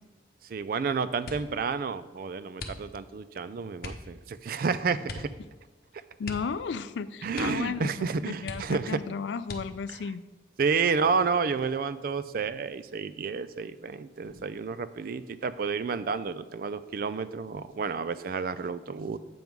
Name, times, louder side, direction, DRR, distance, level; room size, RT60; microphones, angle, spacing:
voice 1, 0.5-5.3 7.2-9.0 9.9-10.0 10.6-19.2, right 5 dB, 50° right, 14 dB, 0.3 m, -30 dB
sound 1, 1.2-1.6 2.5-3.2 3.8-4.1 5.0-5.4 5.6-5.7 6.2-7.0 7.3-7.7 8.0-8.1 8.4-9.0 9.4-10.0 10.7-11.3 11.7-12.1, left 2 dB, 55° left, 0.8 m, -41 dB
sound 2, 4.9-5.4 6.3-6.6 7.7-8.2 9.3-9.5 11.0-11.5 12.3-12.8 14.2-14.9, equal, 90° right, 1.7 m, -56 dB
voice 2, 6.2-10.2, left 5 dB, 80° left, 14 dB, 0.4 m, -34 dB
7.7 x 3.6 x 5.9 m, 1.2 s
head